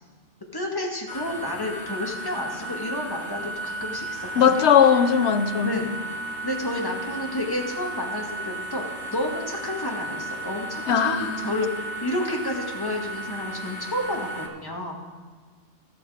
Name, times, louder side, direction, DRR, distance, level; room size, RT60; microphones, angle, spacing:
voice 1, 0.5-4.7 5.6-5.9 6.4-8.9 9.1-15.0, left 1 dB, 20° left, -1 dB, 1.9 m, -30 dB
sound 1, 1.1-14.5, right 1 dB, 80° left, 1.9 m, -34 dB
voice 2, 4.4-5.8 10.9-11.5, left 7 dB, 65° left, 11 dB, 1.0 m, -19 dB
14.0 x 11.5 x 4.9 m, 1.5 s
omnidirectional pair, 1.3 m